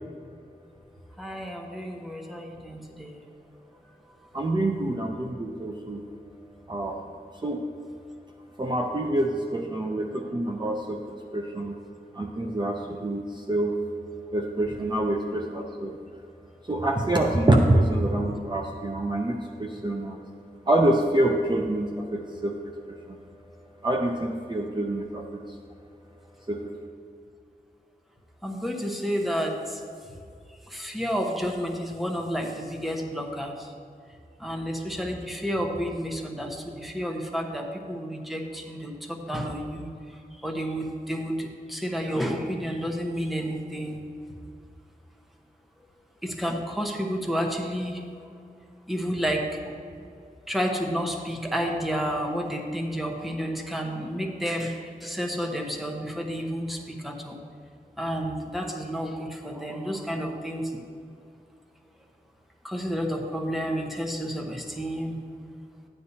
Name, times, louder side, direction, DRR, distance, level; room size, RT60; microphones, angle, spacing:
voice 1, 1.2-3.2 4.2-4.6 28.4-30.1 30.5-33.7 34.4-44.0 46.2-48.3 48.9-49.8 50.5-57.4 58.0-60.8 62.6-65.2, equal, ahead, 1 dB, 1.1 m, -31 dB
voice 2, 4.3-6.0 6.7-7.0 7.4-7.6 8.6-11.8 12.1-13.7 14.3-16.0 16.7-20.2 20.7-22.5 23.1-23.2 23.8-25.4 26.5-26.6, right 1 dB, 30° right, 1 dB, 0.6 m, -26 dB
13.0 x 9.6 x 2.8 m, 2.4 s
wide cardioid pair, 85°, 16 cm